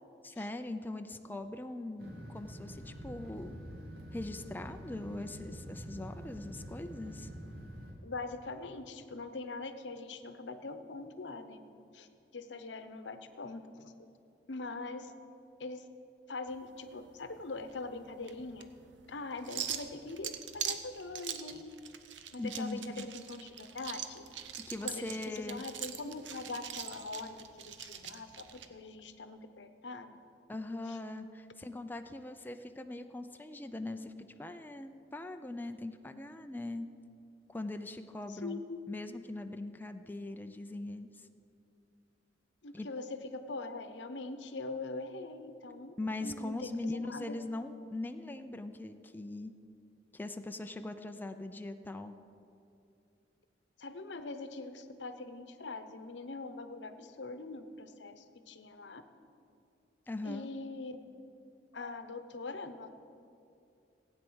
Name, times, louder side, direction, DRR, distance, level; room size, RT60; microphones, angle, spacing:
voice 1, 0.2-3.5 4.1-7.3 22.4-23.1 24.7-25.6 30.5-34.1 34.4-36.9 37.5-41.3 42.7-42.9 46.0-49.5 50.1-52.1 60.1-60.5, left 2 dB, 10° left, 7 dB, 0.5 m, -41 dB
sound 1, 2.0-7.9, equal, 60° right, 2.3 m, -46 dB
voice 2, 8.0-11.6 11.9-12.1 12.3-14.0 14.5-15.1 15.6-15.8 16.3-18.7 19.1-21.7 22.3-24.2 24.8-30.2 30.9-31.0 38.3-38.8 42.6-47.4 53.8-59.0 60.2-61.0 61.7-62.9, left 3 dB, 80° left, 9 dB, 0.8 m, -42 dB
sound 2, 16.5-28.7, right 9 dB, 90° right, 0.8 m, -43 dB
16.0 x 9.0 x 6.2 m, 2.6 s
head